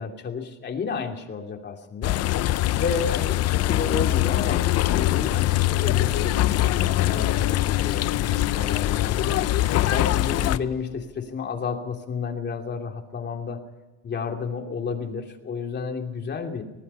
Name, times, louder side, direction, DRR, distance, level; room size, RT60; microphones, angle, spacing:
voice 1, 0.0-2.2 2.8-9.4 9.9-13.6 14.0-16.6, left 5 dB, 30° left, 3 dB, 2.8 m, -31 dB
sound 1, 2.0-10.6, left 15 dB, 45° left, 0.7 m, -23 dB
sound 2, 5.5-11.0, left 6 dB, 75° left, 3.8 m, -44 dB
25.0 x 18.5 x 5.6 m, 1.1 s
cardioid pair, 140°, 36 cm